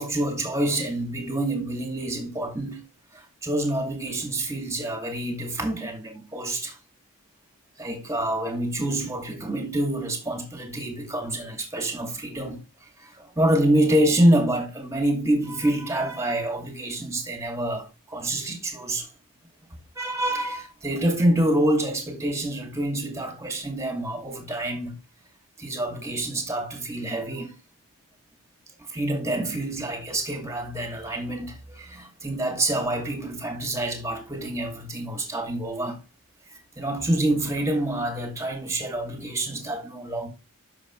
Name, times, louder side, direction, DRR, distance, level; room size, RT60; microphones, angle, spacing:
voice 1, 0.0-2.8 3.1-6.8 7.8-19.1 20.0-25.0 25.6-27.5 28.9-36.0 36.5-40.3, right 1 dB, 15° right, 2.3 m, -27 dB
10.0 x 6.5 x 3.2 m
head